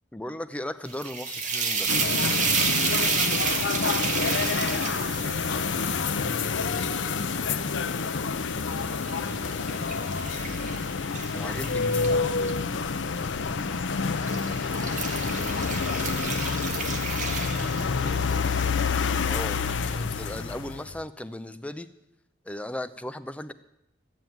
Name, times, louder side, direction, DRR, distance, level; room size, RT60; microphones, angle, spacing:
voice 1, 0.1-1.9 11.3-12.5 19.3-21.9 22.4-23.5, left 1 dB, 5° left, 11 dB, 0.5 m, -37 dB
sound 1, 0.8-8.1 8.6-12.6 13.5-13.8 14.1-18.3, right 5 dB, 40° right, 1.6 m, -31 dB
sound 2, 1.9-21.0, left 5 dB, 75° left, 0.6 m, -28 dB
voice 2, 4.2-5.7 6.2-8.1 8.5-11.0 14.3-17.4 17.8-18.8, equal, 75° right, -3 dB, 4.4 m, -45 dB
15.0 x 7.4 x 9.1 m, 0.84 s
head